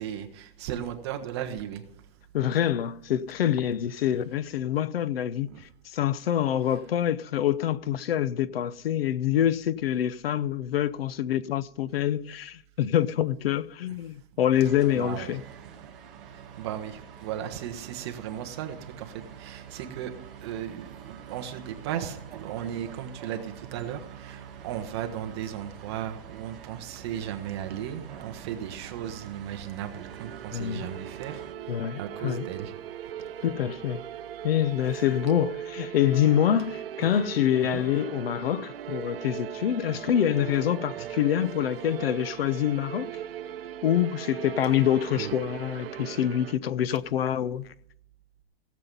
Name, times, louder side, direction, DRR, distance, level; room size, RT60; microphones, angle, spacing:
voice 1, 0.0-1.8 5.5-5.6 6.7-6.8 14.9-15.4 16.6-20.1 20.4-31.4 31.7-32.7 33.2-33.3 37.0-37.1 37.7-37.8 41.0-41.1 45.1-45.3, right 10 dB, 25° right, 1.0 m, -36 dB
voice 2, 2.3-15.4 30.5-30.9 31.7-32.5 33.4-34.0 34.4-43.1 43.8-47.7, left 10 dB, 70° left, 0.7 m, -26 dB
sound 1, 14.5-31.5, right 8 dB, 5° right, 0.4 m, -46 dB
sound 2, 29.8-46.5, right 10 dB, 65° right, 0.8 m, -39 dB
17.0 x 7.5 x 5.4 m
hypercardioid pair, 180°, 31 cm